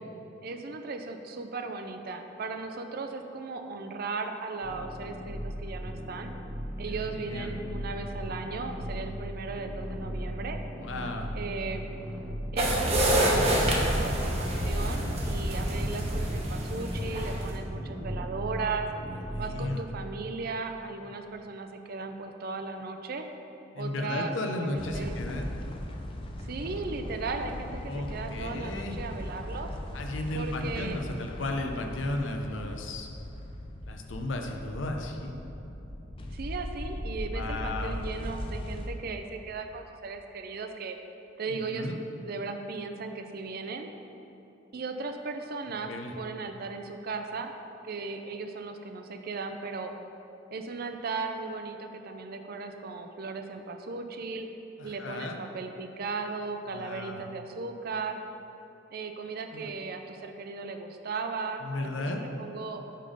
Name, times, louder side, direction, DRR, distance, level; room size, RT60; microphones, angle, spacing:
voice 1, 0.4-6.3 6.8-10.6 11.3-11.9 12.5-18.9 19.4-23.3 23.8-25.1 26.4-29.7 30.3-31.0 36.3-41.0 41.4-41.9 42.2-43.9 44.7-47.5 47.8-49.9 50.5-54.5 54.8-58.2 58.9-62.8, right 4 dB, 55° right, 6 dB, 0.5 m, -36 dB
sound 1, 4.6-19.7, equal, 5° right, 0.8 m, -37 dB
voice 2, 6.8-7.5 10.8-11.3 19.1-19.8 23.7-25.6 27.8-28.9 29.9-33.1 33.9-35.3 37.3-38.0 41.5-42.0 45.9-46.1 54.8-55.4 56.7-57.2 59.5-59.7 61.6-62.2, left 2 dB, 80° left, 3 dB, 0.7 m, -34 dB
sound 2, 12.6-17.5, right 1 dB, 35° right, 0.9 m, -27 dB
sound 3, 24.8-38.9, left 1 dB, 30° left, 0.5 m, -38 dB
5.4 x 5.3 x 5.1 m, 3.0 s
head